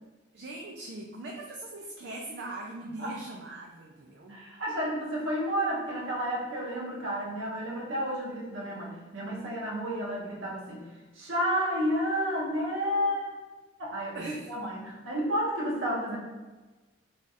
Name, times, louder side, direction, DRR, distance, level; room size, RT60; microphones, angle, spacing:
voice 1, 0.3-4.4 14.1-14.5, right 2 dB, 55° right, 0 dB, 0.4 m, -41 dB
voice 2, 4.3-10.8 11.1-13.4 13.8-16.2, equal, 75° right, -4 dB, 1.2 m, -31 dB
3.4 x 2.3 x 4.1 m, 1.2 s
head